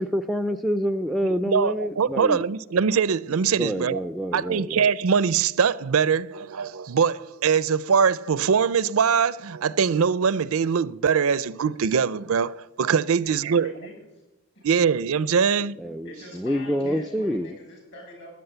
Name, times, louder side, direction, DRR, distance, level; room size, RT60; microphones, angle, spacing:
voice 1, 0.0-2.4 3.6-4.9 15.8-17.6, equal, ahead, 0.4 m, -27 dB
voice 2, 1.5-4.0 4.3-13.7 14.6-15.7, right 6 dB, 75° right, 0.5 m, -22 dB
voice 3, 13.1-14.1 14.5-14.7 16.0-18.3, left 1 dB, 55° left, 7.3 m, -44 dB
13.5 x 10.0 x 7.9 m
head